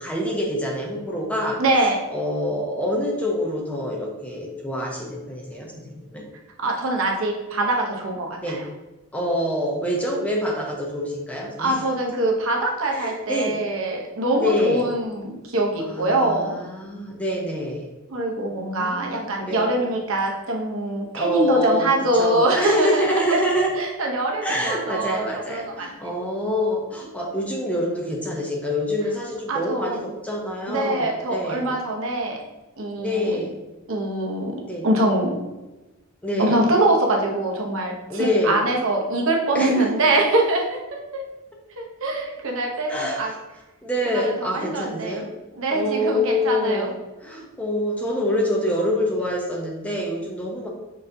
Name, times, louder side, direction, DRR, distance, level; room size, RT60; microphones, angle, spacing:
voice 1, 0.0-1.6 2.1-6.2 8.4-8.6 9.1-11.7 12.9-13.6 14.4-14.8 15.8-17.9 18.5-19.7 21.1-23.7 24.4-31.6 33.0-33.5 34.7-34.9 36.2-36.6 38.1-38.6 39.5-39.9 42.9-43.4 43.8-45.3 45.7-47.0 47.2-50.7, left 1 dB, 5° left, -1 dB, 0.6 m, -26 dB
voice 2, 1.6-2.0 6.6-8.6 11.6-16.6 18.1-25.9 29.5-30.0 30.7-32.4 32.8-33.4 33.9-34.6 34.8-35.4 36.4-41.2 41.8-43.3 44.0-45.3 45.5-46.9, right 2 dB, 65° right, 0 dB, 0.8 m, -24 dB
6.4 x 2.6 x 2.7 m, 1.1 s
head